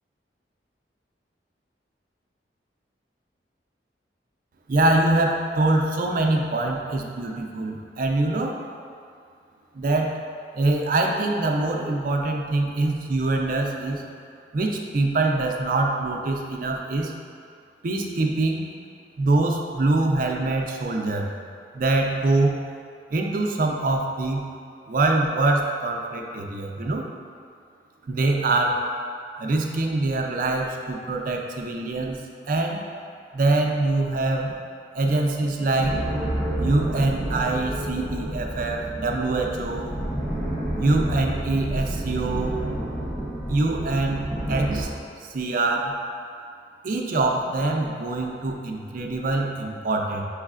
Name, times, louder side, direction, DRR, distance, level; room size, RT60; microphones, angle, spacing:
voice 1, 4.7-8.6 9.7-10.2 10.5-14.0 14.5-17.1 17.8-18.7 19.2-21.3 21.7-22.6 23.1-24.5 24.9-27.0 28.1-28.8 29.4-32.2 32.5-32.8 33.3-34.5 34.9-36.0 36.6-39.9 40.8-42.6 43.5-44.9 45.2-46.0 46.8-50.2, right 2 dB, 50° right, 1 dB, 0.4 m, -24 dB
sound 1, 35.8-44.8, right 1 dB, 5° left, 0.6 m, -29 dB
6.1 x 3.2 x 2.4 m, 2.3 s
head